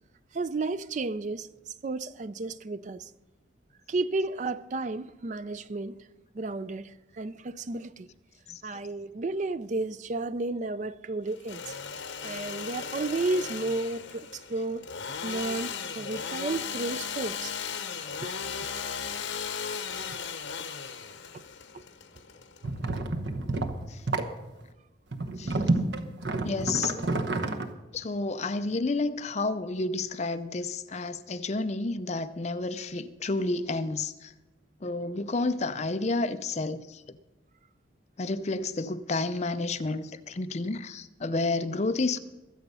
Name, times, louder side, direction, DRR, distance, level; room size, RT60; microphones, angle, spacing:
voice 1, 0.3-3.1 3.9-6.0 6.3-8.1 8.6-11.7 12.2-14.9 15.2-17.5 18.2-18.7 20.1-20.2 21.3-21.4, right 3 dB, 40° right, 0.4 m, -32 dB
voice 2, 8.5-8.8 17.2-17.3 17.9-18.1 23.9-24.0 25.4-25.7 26.4-27.0 27.9-34.3 34.8-37.0 38.2-42.2, left 3 dB, 35° left, 0.5 m, -30 dB
Engine / Sawing, 11.3-23.0, left 6 dB, 75° left, 1.1 m, -36 dB
sound 1, 22.6-24.3 25.1-27.7, right 2 dB, 60° right, 1.0 m, -29 dB
22.0 x 8.0 x 5.5 m
head